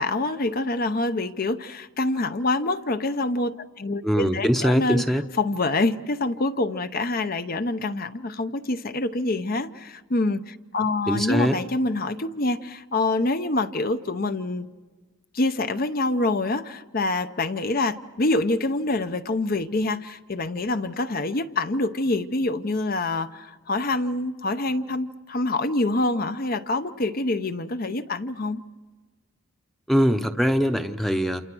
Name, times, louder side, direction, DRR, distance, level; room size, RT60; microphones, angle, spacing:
voice 1, 0.0-14.7 15.3-28.6, left 2 dB, 45° left, 0.8 m, -26 dB
voice 2, 4.0-5.2 11.1-11.5 29.9-31.4, equal, ahead, 0.8 m, -22 dB
28.0 x 28.0 x 6.2 m
head